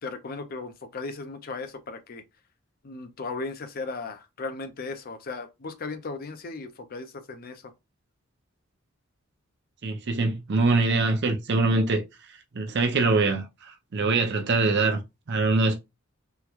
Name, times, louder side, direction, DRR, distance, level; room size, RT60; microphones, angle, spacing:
voice 1, 0.0-2.2 2.8-7.6, left 3 dB, 45° left, 0.5 m, -36 dB
voice 2, 9.8-12.0 12.5-15.0 15.3-15.7, right 3 dB, 55° right, 0.6 m, -23 dB
3.7 x 2.1 x 2.9 m
head